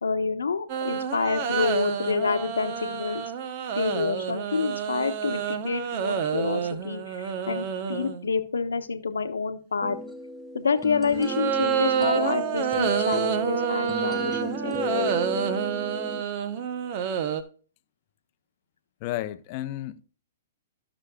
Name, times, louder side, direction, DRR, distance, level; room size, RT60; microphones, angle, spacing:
voice 1, 0.0-3.2 3.8-10.0 10.5-15.1, left 5 dB, 85° left, 1.0 m, -28 dB
sound 1, 0.7-8.3 11.1-17.4, right 8 dB, 45° right, 0.9 m, -28 dB
sound 2, 9.8-16.2, left 1 dB, 5° right, 0.7 m, -34 dB
voice 2, 19.0-20.0, left 14 dB, 45° left, 0.6 m, -32 dB
14.5 x 6.2 x 2.3 m
hypercardioid pair, 125°, 0 cm